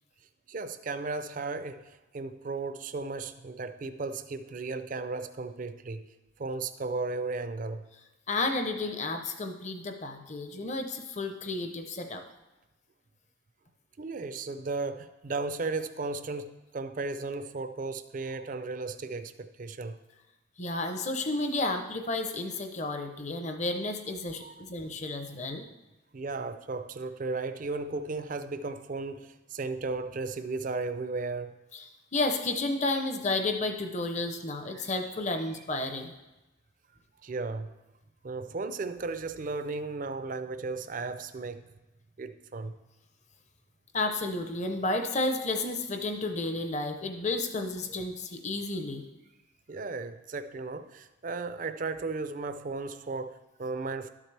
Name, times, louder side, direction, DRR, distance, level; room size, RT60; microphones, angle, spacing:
voice 1, 0.5-6.1 6.4-7.9 14.0-20.0 24.4-24.6 26.1-31.5 34.7-34.9 35.5-35.6 37.2-37.7 38.2-41.6 42.2-42.8 49.7-54.1, right 3 dB, 40° right, 0.4 m, -35 dB
voice 2, 8.3-12.2 20.6-25.7 31.7-31.8 32.1-36.1 43.9-49.0, left 2 dB, 35° left, 0.7 m, -32 dB
12.5 x 7.4 x 3.3 m
head